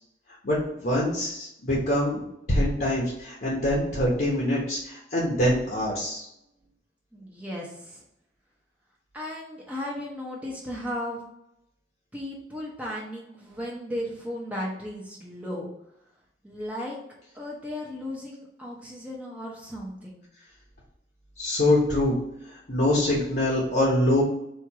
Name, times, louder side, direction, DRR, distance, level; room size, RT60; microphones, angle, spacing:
voice 1, 0.4-2.2 2.5-6.3 21.4-22.2 22.7-24.2, left 1 dB, 50° left, -4 dB, 1.0 m, -24 dB
voice 2, 7.1-8.0 9.1-11.2 12.1-15.7 16.4-17.0 17.3-20.2, left 1 dB, 10° right, -4 dB, 0.7 m, -35 dB
4.4 x 2.6 x 4.6 m, 0.80 s
head